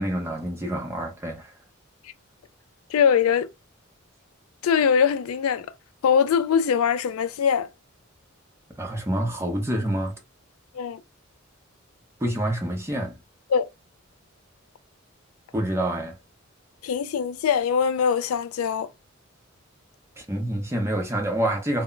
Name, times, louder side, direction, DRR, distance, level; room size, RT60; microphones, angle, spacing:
voice 1, 0.0-1.5 8.8-10.1 12.2-13.1 15.5-16.2 20.2-21.8, right 1 dB, 15° right, 0.6 m, -27 dB
voice 2, 2.9-3.5 4.6-5.7 6.0-7.7 10.7-11.0 13.5-13.7 16.8-18.9, left 7 dB, 85° left, 0.3 m, -22 dB
2.1 x 2.0 x 3.7 m
head